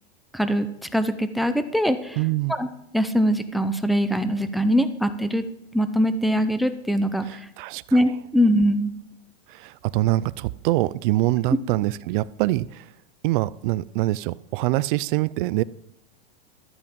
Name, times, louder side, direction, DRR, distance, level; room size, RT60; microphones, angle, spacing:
voice 1, 0.3-0.7 0.9-2.2 2.5-2.7 2.9-5.4 5.7-7.4 7.9-8.9, equal, ahead, 10 dB, 0.6 m, -22 dB
voice 2, 2.2-2.6 7.3-8.0 9.5-12.9 13.2-15.6, right 17 dB, 50° right, 19 dB, 0.5 m, -24 dB
13.0 x 8.5 x 5.3 m, 0.79 s
supercardioid pair, 140°, 32 cm